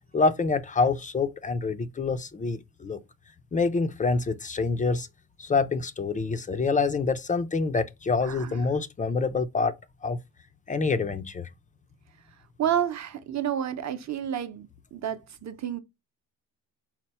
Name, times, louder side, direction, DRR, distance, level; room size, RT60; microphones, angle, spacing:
voice 1, 0.1-3.0 3.5-5.1 5.4-9.7 10.0-10.2 10.7-11.5, left 4 dB, 20° left, 0.3 m, -26 dB
voice 2, 8.2-8.6 12.6-15.8, right 9 dB, 40° right, 0.6 m, -30 dB
4.3 x 2.0 x 4.1 m
cardioid pair, 105°, 41 cm